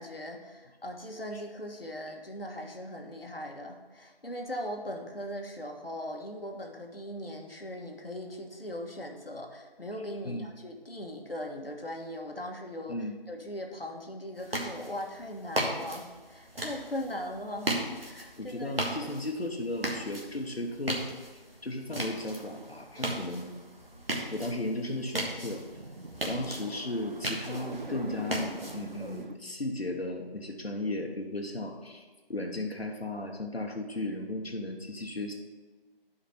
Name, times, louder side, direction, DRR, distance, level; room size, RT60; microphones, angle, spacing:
voice 1, 0.0-18.7 19.0-19.1, left 1 dB, 70° left, 2 dB, 1.4 m, -39 dB
sound 1, 14.4-29.2, right 1 dB, 70° right, 1.6 m, -37 dB
voice 2, 18.4-21.0 21.6-23.5 24.3-25.6 26.3-35.3, left 1 dB, 90° left, 1 dB, 1.2 m, -35 dB
sound 2, 22.0-24.5 25.0-29.4, right 2 dB, 55° right, 0.5 m, -45 dB
9.8 x 5.1 x 4.3 m, 1.4 s
figure-of-eight pair, 175°, 30 cm